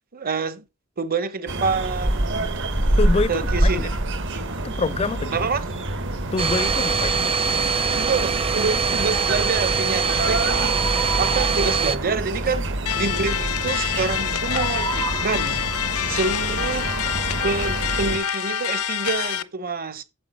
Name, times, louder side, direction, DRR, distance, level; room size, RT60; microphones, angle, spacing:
voice 1, 0.1-0.6 1.0-2.4 3.3-3.9 4.3-4.6 5.3-5.6 7.9-15.6 16.1-17.0 17.4-20.0, right 4 dB, 45° right, 1.0 m, -27 dB
sound 1, 1.5-18.2, right 1 dB, 60° right, 1.4 m, -26 dB
voice 2, 3.0-3.9 4.6-5.5 6.3-7.4, left 3 dB, 25° left, 0.4 m, -26 dB
Domestic sounds home sounds, 6.4-12.0, right 6 dB, 25° right, 0.7 m, -23 dB
sound 2, 12.9-19.4, left 10 dB, 90° left, 0.7 m, -26 dB
8.9 x 7.4 x 4.4 m
head